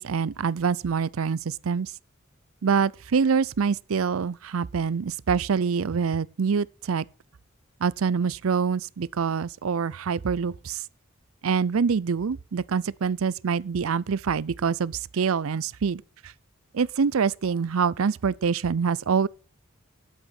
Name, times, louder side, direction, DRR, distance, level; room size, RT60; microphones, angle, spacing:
voice 1, 0.0-1.9 2.6-7.0 7.8-10.8 11.4-16.3 16.7-19.3, right 6 dB, 80° right, 0.5 m, -25 dB
12.0 x 8.1 x 5.7 m
head